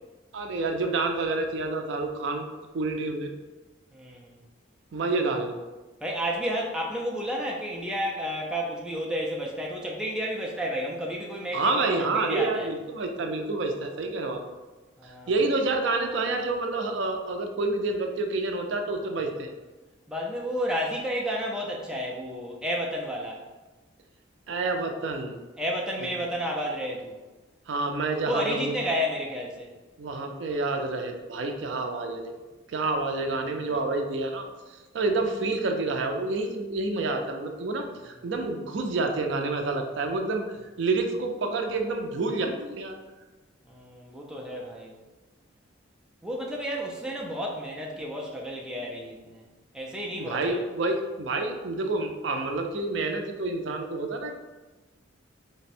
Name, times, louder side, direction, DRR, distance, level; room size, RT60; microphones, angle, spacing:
voice 1, 0.3-2.5 2.7-3.3 4.9-5.6 11.5-14.4 15.0-19.5 24.5-25.3 27.7-28.7 30.0-32.3 32.7-34.5 34.9-40.4 40.8-43.0 50.2-54.3, right 3 dB, 65° right, 4 dB, 0.4 m, -28 dB
voice 2, 3.9-4.4 6.0-11.7 12.1-12.7 15.0-15.3 20.1-23.4 25.6-27.1 28.2-29.7 33.4-33.8 43.6-44.9 46.2-49.4 49.7-50.6, equal, 5° right, -2 dB, 0.4 m, -31 dB
3.4 x 2.1 x 4.1 m, 1.2 s
head